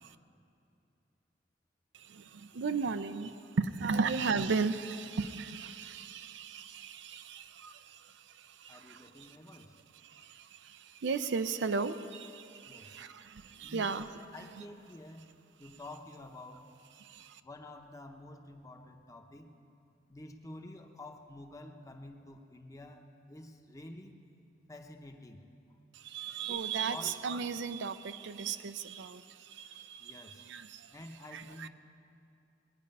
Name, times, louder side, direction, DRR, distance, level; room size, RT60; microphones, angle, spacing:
voice 1, 1.9-9.4 10.0-14.1 17.0-17.4 25.9-31.0 31.3-31.7, right 5 dB, 70° right, 11 dB, 0.5 m, -36 dB
voice 2, 8.7-9.7 12.7-13.0 13.6-14.1 14.3-15.3 15.6-16.7 17.4-19.5 20.1-24.1 24.7-25.4 26.5-26.6 26.9-27.2 30.0-30.5 30.9-31.7, left 1 dB, 20° left, 4 dB, 0.8 m, -49 dB
20.0 x 9.5 x 5.4 m, 2.6 s
head